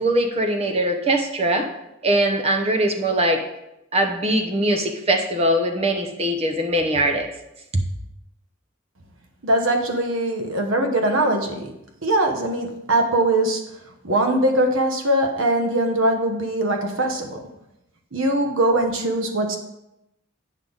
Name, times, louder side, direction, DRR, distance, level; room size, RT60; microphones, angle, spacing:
voice 1, 0.0-1.7 2.0-3.4 3.9-7.3 7.7-7.8, right 1 dB, 30° right, 4 dB, 0.9 m, -21 dB
voice 2, 9.4-11.7 12.0-13.6 14.0-17.4 18.1-19.6, right 1 dB, 80° right, 4 dB, 1.2 m, -21 dB
8.9 x 5.5 x 4.0 m, 0.87 s
head